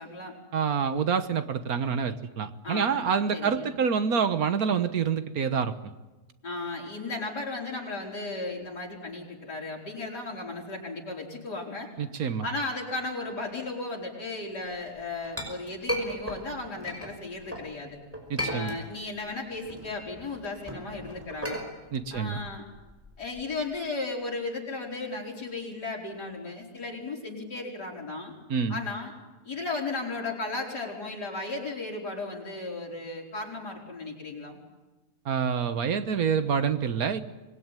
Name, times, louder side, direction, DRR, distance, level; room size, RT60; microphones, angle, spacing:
voice 1, 0.0-0.3 2.6-3.7 6.4-11.9 12.4-18.0 18.5-21.6 22.1-22.7 23.2-28.3 28.7-29.1 29.4-34.6, left 3 dB, 90° left, -1 dB, 5.3 m, -35 dB
voice 2, 0.5-5.9 12.0-12.5 18.3-18.8 21.9-22.4 28.5-28.8 35.2-37.2, right 6 dB, 65° right, 10 dB, 1.6 m, -27 dB
Chink clink, 14.8-17.7 18.1-19.2 19.5-23.6, equal, 10° right, 5.4 m, -36 dB
25.5 x 20.5 x 9.1 m, 1.2 s
omnidirectional pair, 1.7 m